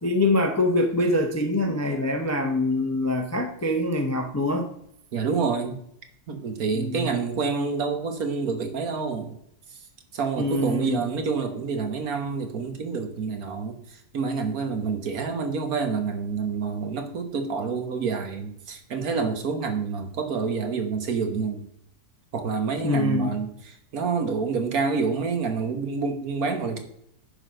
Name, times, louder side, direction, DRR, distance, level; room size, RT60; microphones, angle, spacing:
voice 1, 0.0-4.7 6.7-7.1 10.4-11.0 22.8-23.3, left 1 dB, 15° left, 4 dB, 0.5 m, -24 dB
voice 2, 5.1-5.8 6.3-9.4 10.1-21.6 22.3-26.8, right 5 dB, 65° right, 6 dB, 1.6 m, -28 dB
10.0 x 4.1 x 6.4 m, 0.72 s
omnidirectional pair, 1.7 m